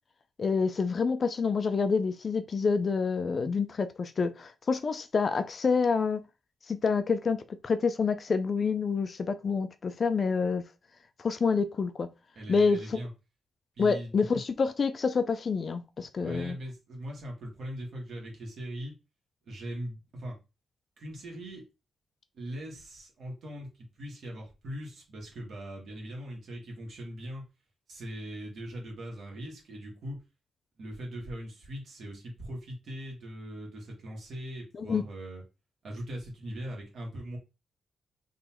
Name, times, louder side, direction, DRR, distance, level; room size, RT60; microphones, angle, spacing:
voice 1, 0.4-6.2 6.7-10.6 11.2-12.1 12.5-13.0 13.8-16.6 34.7-35.0, left 5 dB, 35° left, 0.3 m, -27 dB
voice 2, 12.3-13.1 13.8-14.3 16.2-18.9 19.4-20.4 21.0-21.6 22.3-27.4 27.9-30.2 30.8-35.4 35.8-37.4, equal, 55° right, 1.7 m, -40 dB
3.8 x 3.0 x 2.9 m
wide cardioid pair, 170°, 0 cm